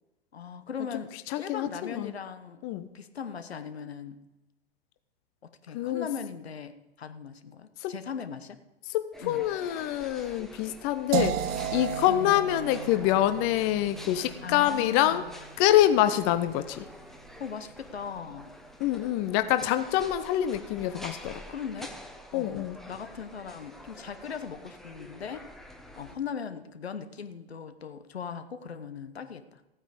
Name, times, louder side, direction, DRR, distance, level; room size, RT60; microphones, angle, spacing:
voice 1, 0.3-2.6 2.9-4.2 5.6-8.6 9.2-9.4 12.1-12.5 14.4-15.3 16.1-16.2 17.4-18.5 21.5-21.9 22.3-25.5 26.0-29.6, left 7 dB, 75° left, 10 dB, 1.1 m, -39 dB
voice 2, 1.3-2.1 2.6-2.9 5.7-6.1 7.8-7.9 8.9-15.2 15.6-16.8 18.8-21.4 22.3-22.8, left 13 dB, 35° left, 11 dB, 0.6 m, -26 dB
sound 1, 9.1-26.2, equal, ahead, 1.0 m, -47 dB
sound 2, 11.1-17.0, right 11 dB, 30° right, 0.7 m, -36 dB
15.0 x 9.0 x 5.0 m, 0.98 s
figure-of-eight pair, 105°, 31 cm